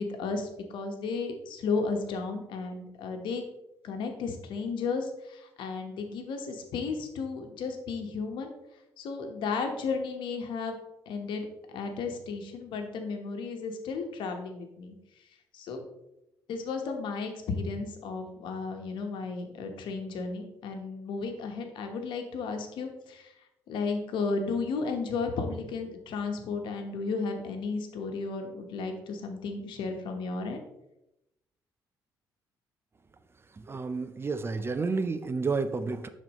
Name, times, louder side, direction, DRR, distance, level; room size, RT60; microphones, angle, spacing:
voice 1, 0.0-3.4 3.8-8.5 9.0-10.7 11.1-14.9 15.5-15.8 16.5-23.3 23.7-30.6, left 4 dB, 75° left, 4 dB, 1.2 m, -34 dB
voice 2, 33.7-36.1, right 4 dB, 30° right, 11 dB, 0.6 m, -30 dB
10.0 x 4.2 x 3.1 m, 0.88 s
cardioid pair, 80°, 8 cm